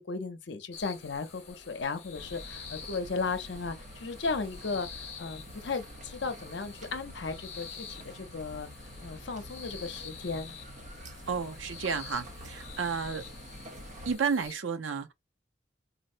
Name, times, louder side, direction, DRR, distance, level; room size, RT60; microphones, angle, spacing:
voice 1, 0.0-8.7 9.0-10.6, left 4 dB, 65° left, 0.6 m, -35 dB
sound 1, 0.7-14.5, left 6 dB, 30° left, 0.9 m, -48 dB
sound 2, 2.1-14.2, equal, 40° right, 0.6 m, -47 dB
voice 2, 11.3-13.2 14.1-15.1, right 5 dB, 80° right, 0.6 m, -32 dB
4.0 x 2.1 x 2.5 m
head